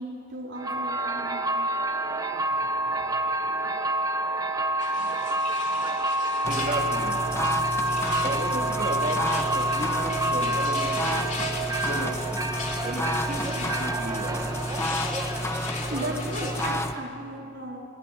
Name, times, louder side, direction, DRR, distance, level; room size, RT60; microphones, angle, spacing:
voice 1, 0.0-1.4 15.9-17.8, right 1 dB, 55° right, -2 dB, 4.2 m, -35 dB
sound 1, 0.5-17.0, right 2 dB, 15° right, 1.1 m, -28 dB
sound 2, 4.8-16.8, left 4 dB, 35° left, 2.7 m, -38 dB
sound 3, 6.4-17.0, left 1 dB, 15° left, 1.0 m, -31 dB
voice 2, 6.5-7.3 8.2-11.3 11.7-12.5 12.8-14.5 15.0-15.7, right 1 dB, 35° right, 0 dB, 3.3 m, -34 dB
22.0 x 21.0 x 8.9 m, 2.5 s
head